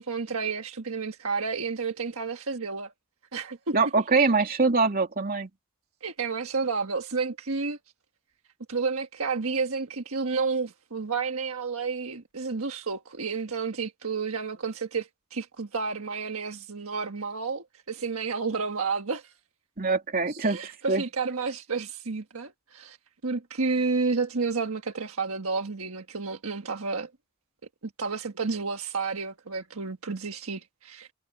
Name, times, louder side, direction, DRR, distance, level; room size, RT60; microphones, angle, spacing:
voice 1, 0.0-2.9 3.3-3.7 6.0-7.8 8.7-19.3 20.3-23.0 23.2-27.1 28.0-31.1, right 4 dB, 65° right, 1.5 m, -31 dB
voice 2, 3.7-5.5 19.8-21.0, right 4 dB, 40° right, 2.5 m, -24 dB
head